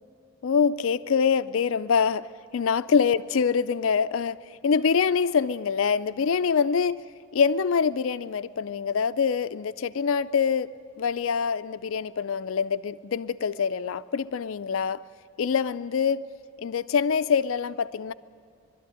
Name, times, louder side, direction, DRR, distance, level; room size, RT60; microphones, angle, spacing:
voice 1, 0.4-2.3 2.5-4.4 4.6-7.0 7.3-10.7 11.0-15.0 15.4-16.2 16.6-18.1, left 6 dB, 70° left, 0.4 m, -25 dB
21.5 x 13.0 x 9.9 m
head